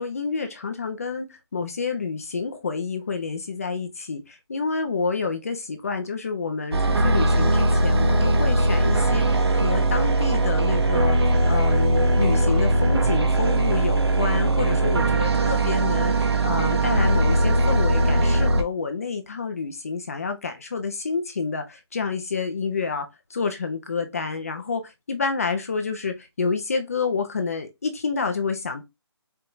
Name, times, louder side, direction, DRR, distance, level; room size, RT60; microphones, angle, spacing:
voice 1, 0.0-28.8, left 4 dB, 30° left, 0.7 m, -29 dB
sound 1, 6.7-18.6, right 1 dB, 60° right, 1.0 m, -20 dB
4.5 x 3.4 x 2.5 m
hypercardioid pair, 175°, 15 cm